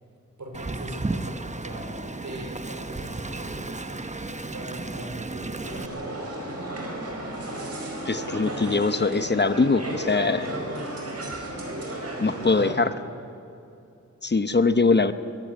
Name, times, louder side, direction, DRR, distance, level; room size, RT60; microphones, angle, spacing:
voice 1, 0.4-4.1 4.5-5.9 12.5-13.0, right 1 dB, 70° right, 2 dB, 4.5 m, -40 dB
Wind, 0.5-5.9, right 2 dB, 25° right, 1.0 m, -34 dB
sound 1, 5.6-12.7, right 1 dB, 55° right, 4.9 m, -33 dB
voice 2, 8.1-10.5 12.2-12.9 14.2-15.1, left 4 dB, 35° left, 11 dB, 0.8 m, -22 dB
22.5 x 15.0 x 9.3 m, 2.7 s
wide cardioid pair, 70°, 30 cm